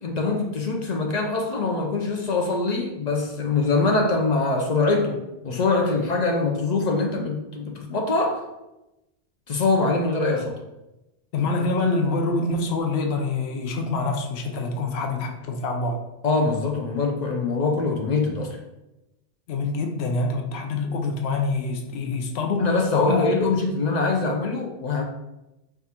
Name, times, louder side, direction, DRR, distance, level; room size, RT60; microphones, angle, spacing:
voice 1, 0.0-8.4 9.5-10.5 16.2-18.6 22.6-25.0, left 3 dB, 55° left, 1 dB, 0.5 m, -23 dB
voice 2, 11.3-16.1 19.5-23.3, left 3 dB, 75° left, 3 dB, 0.8 m, -26 dB
5.6 x 2.4 x 2.8 m, 0.96 s
omnidirectional pair, 1.1 m